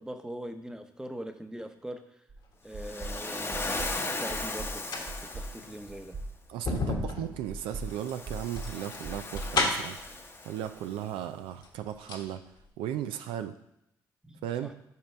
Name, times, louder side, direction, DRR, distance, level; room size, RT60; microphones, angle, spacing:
voice 1, 0.0-2.0 2.6-4.9 5.2-6.2 14.2-14.7, right 1 dB, 10° right, 7 dB, 0.8 m, -42 dB
sound 1, 2.3-2.4 2.7-3.2 3.5-4.0 4.3-4.8 5.1-5.5 5.9-6.3 6.6-7.1 7.5-7.9 8.3-8.7 9.0-10.2, right 2 dB, 55° right, 1.1 m, -38 dB
Waves surf, 2.8-6.0 7.8-10.9, left 2 dB, 30° left, 0.9 m, -37 dB
sound 2, 3.0-3.9 4.7-10.1 11.0-11.1 11.5-12.3 12.6-12.7, left 3 dB, 60° left, 1.4 m, -34 dB
voice 2, 6.5-10.2 10.4-12.4 12.8-13.5 14.4-14.7, right 11 dB, 85° right, 8 dB, 0.4 m, -36 dB
5.6 x 5.2 x 4.4 m, 0.80 s
supercardioid pair, 55°, 9 cm